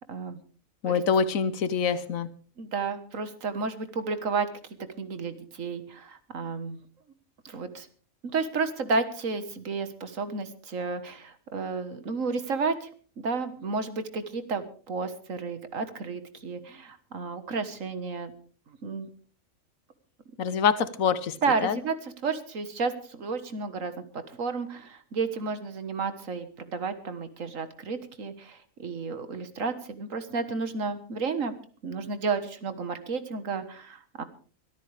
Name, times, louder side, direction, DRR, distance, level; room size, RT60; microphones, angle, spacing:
voice 1, 0.8-2.3 20.4-21.4 21.6-21.8, left 6 dB, 80° left, 1.4 m, -25 dB
voice 2, 2.6-4.5 5.0-6.8 7.5-7.9 8.2-12.9 13.2-18.4 18.8-19.1 21.4-31.6 31.8-34.2, right 4 dB, 75° right, 1.8 m, -32 dB
23.5 x 13.5 x 3.4 m
omnidirectional pair, 1.4 m